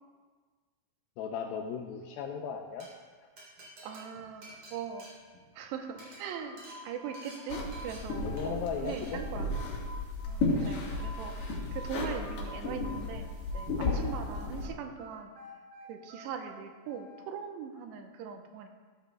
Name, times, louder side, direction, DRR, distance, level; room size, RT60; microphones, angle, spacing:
voice 1, 1.2-2.9 8.2-9.5 13.8-14.0, left 6 dB, 85° left, 2 dB, 2.1 m, -37 dB
Glass, 2.6-2.9 3.4-5.6 5.9-6.2 6.6-6.8 7.1-7.4 7.7-8.0 8.4-8.6 8.8-9.1, right 1 dB, 40° right, 4.5 m, -51 dB
voice 2, 3.8-5.1 5.6-9.5 10.3-15.3 15.9-18.7, right 7 dB, 85° right, 4 dB, 2.9 m, -41 dB
sound 1, 5.9-8.5 8.8-11.3 11.7-14.3 14.6-17.2, left 1 dB, 60° right, 3.9 m, -49 dB
sound 2, 7.5-14.7, left 2 dB, 70° left, 3.6 m, -34 dB
14.5 x 12.5 x 2.3 m, 1.5 s
omnidirectional pair, 5.0 m